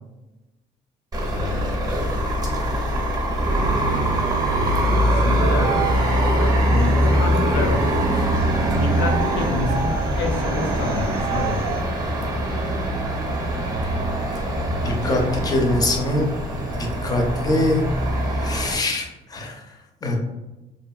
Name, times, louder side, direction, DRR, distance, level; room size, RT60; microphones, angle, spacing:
sound 1, 1.1-18.7, right 1 dB, 20° right, 0.6 m, -22 dB
voice 1, 1.4-2.1 5.0-5.9 6.3-7.8 8.7-11.8, left 3 dB, 75° left, 3 dB, 0.4 m, -28 dB
sound 2, 5.0-8.4 8.9-11.9, right 8 dB, 60° right, 0.4 m, -32 dB
voice 2, 14.7-16.3 17.0-17.8 18.3-19.5 20.0-20.2, left 2 dB, 20° left, 2 dB, 0.5 m, -23 dB
2.7 x 2.5 x 2.3 m, 1.1 s
cardioid pair, 115°, 18 cm